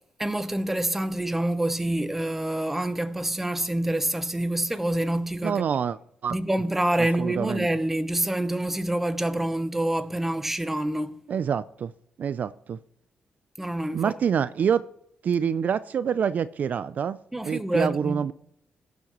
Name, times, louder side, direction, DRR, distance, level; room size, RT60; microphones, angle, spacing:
voice 1, 0.2-5.7 6.3-11.2 13.6-14.1 17.3-18.2, right 1 dB, 10° right, 0.8 m, -27 dB
voice 2, 5.4-6.0 6.2-6.3 7.2-7.7 11.3-11.9 12.2-12.8 13.9-14.8 15.2-17.2 17.4-18.3, right 7 dB, 50° right, 0.3 m, -26 dB
17.0 x 7.2 x 3.0 m
cardioid pair, 105°, 3 cm